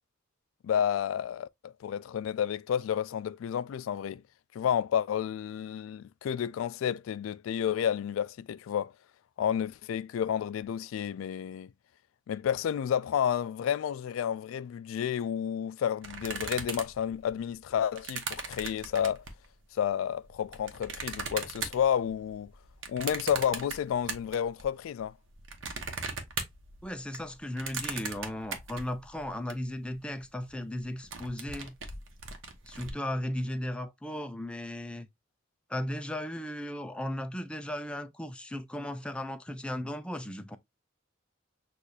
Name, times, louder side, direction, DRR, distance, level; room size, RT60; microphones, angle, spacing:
voice 1, 0.6-4.2 4.5-8.9 9.4-11.7 12.3-19.2 19.7-22.5 22.9-25.1, left 9 dB, 90° left, 0.3 m, -31 dB
sound 1, 16.0-19.5 20.1-24.7 25.0-29.5 29.9-30.0 30.2-30.5 30.8-32.9, right 5 dB, 70° right, 0.9 m, -39 dB
voice 2, 26.8-31.8 32.6-35.1 35.7-40.6, left 1 dB, 5° left, 0.4 m, -36 dB
6.4 x 2.5 x 2.7 m
head